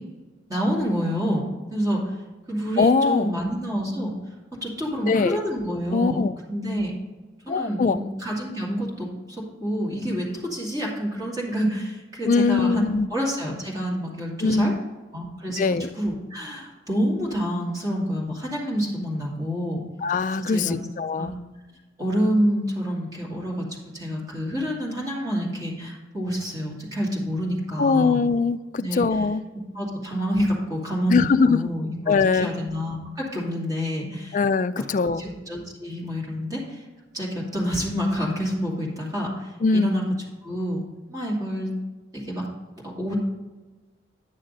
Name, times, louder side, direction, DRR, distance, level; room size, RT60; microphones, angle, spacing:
voice 1, 0.5-1.4 1.7-2.1 2.5-4.1 4.5-6.2 6.5-6.9 7.4-14.7 15.1-19.8 20.5-20.7 21.2-21.4 22.0-23.6 23.9-28.2 28.8-29.0 29.7-32.0 32.3-34.4 34.8-34.9 35.2-36.8 37.1-40.0 40.4-40.8 41.1-41.7 42.1-42.4 42.8-43.2, equal, 20° right, -4 dB, 2.4 m, -28 dB
voice 2, 2.8-3.3 5.0-5.4 5.9-6.3 7.5-8.0 12.3-13.1 14.4-14.8 15.6-15.9 20.0-21.3 27.8-29.4 31.1-31.7 32.1-32.5 34.3-35.2 39.6-39.9, left 4 dB, 40° left, 13 dB, 0.3 m, -21 dB
9.7 x 6.5 x 4.0 m, 1.2 s
head